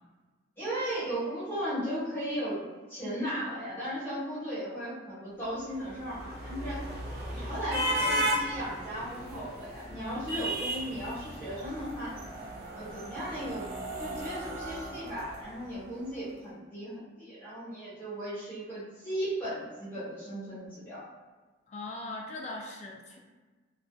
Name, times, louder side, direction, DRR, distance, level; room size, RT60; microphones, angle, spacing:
voice 1, 0.6-2.6 2.9-6.9 7.3-12.1 12.7-21.0, equal, 10° left, -11 dB, 1.0 m, -36 dB
sound 1, 5.6-15.9, equal, 50° right, 0.5 m, -35 dB
voice 2, 21.7-23.2, left 2 dB, 35° left, 0 dB, 0.3 m, -40 dB
2.4 x 2.4 x 2.2 m, 1.3 s
head